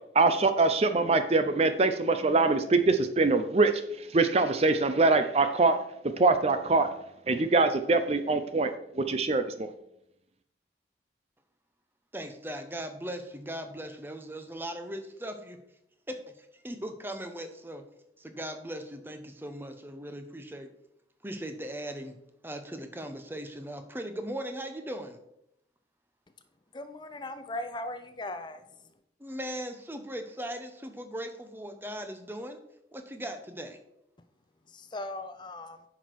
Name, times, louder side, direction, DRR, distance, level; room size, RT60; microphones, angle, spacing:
voice 1, 0.1-3.7 4.0-5.8 6.2-6.9 7.3-9.7, right 3 dB, 35° right, 9 dB, 0.5 m, -24 dB
voice 2, 12.1-15.6 16.1-17.9 18.2-20.7 21.2-22.2 22.4-25.2 29.2-32.6 32.9-33.8, right 1 dB, 10° right, 7 dB, 0.8 m, -39 dB
voice 3, 26.7-28.6 34.7-35.8, left 1 dB, 25° left, 9 dB, 0.5 m, -38 dB
9.6 x 6.0 x 4.7 m, 0.79 s
head